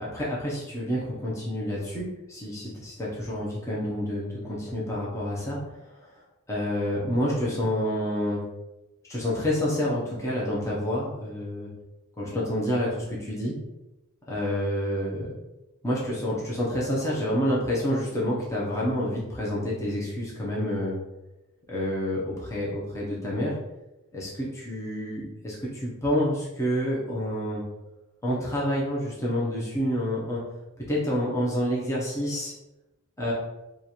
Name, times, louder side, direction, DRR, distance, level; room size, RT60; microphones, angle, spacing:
voice 1, 0.0-6.1 6.5-8.4 9.1-11.7 12.2-13.5 14.3-15.3 15.8-21.0 21.7-23.5 24.1-27.6 28.2-30.4 30.9-32.5 33.2-33.3, equal, 15° left, -6 dB, 0.7 m, -28 dB
3.1 x 2.4 x 4.1 m, 0.99 s
head